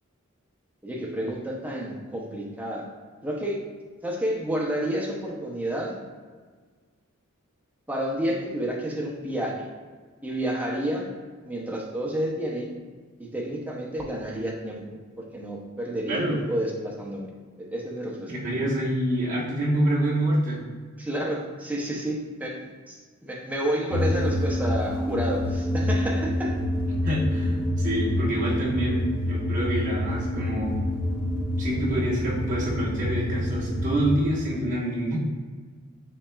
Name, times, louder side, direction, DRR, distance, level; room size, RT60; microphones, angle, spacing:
voice 1, 0.8-2.8 3.2-3.6 4.0-6.0 7.9-9.7 10.2-11.1 11.4-12.7 13.2-14.9 15.2-17.3 17.7-18.3 21.0-26.6, right 1 dB, 10° right, -2 dB, 0.6 m, -30 dB
voice 2, 16.1-16.4 18.3-20.6 27.0-30.7 31.6-35.2, right 1 dB, 40° right, -6 dB, 1.2 m, -27 dB
sound 1, 23.9-34.2, left 1 dB, 65° left, 0.8 m, -27 dB
5.8 x 3.6 x 2.3 m, 1.5 s
head